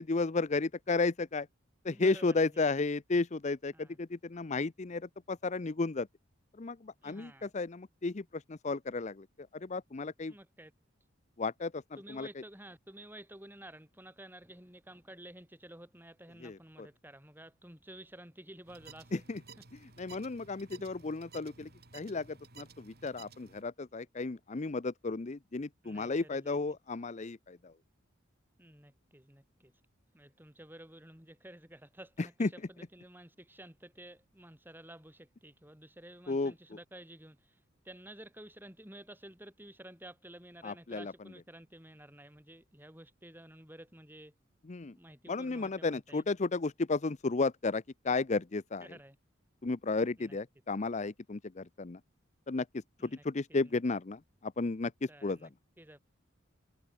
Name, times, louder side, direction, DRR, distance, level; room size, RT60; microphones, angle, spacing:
voice 1, 0.0-1.5 1.8-6.1 6.6-9.3 9.5-10.3 11.4-11.8 12.1-12.3 16.4-16.9 19.1-19.4 20.0-27.7 32.4-32.5 36.3-36.5 40.6-41.1 44.7-44.9 45.3-48.9 49.6-52.0 52.5-52.7 53.0-55.4, left 3 dB, 35° left, 0.6 m, -33 dB
voice 2, 1.9-2.7 3.7-4.0 7.0-7.5 10.3-10.7 12.0-19.2 19.6-19.7 25.8-26.8 28.6-29.7 30.1-44.3 44.9-46.3 48.8-49.2 50.2-50.4 53.0-53.2 53.5-53.8 55.1-55.5 55.8-56.1, right 1 dB, 10° right, 6.9 m, -52 dB
sound 1, 18.7-23.6, right 4 dB, 50° right, 3.1 m, -55 dB
head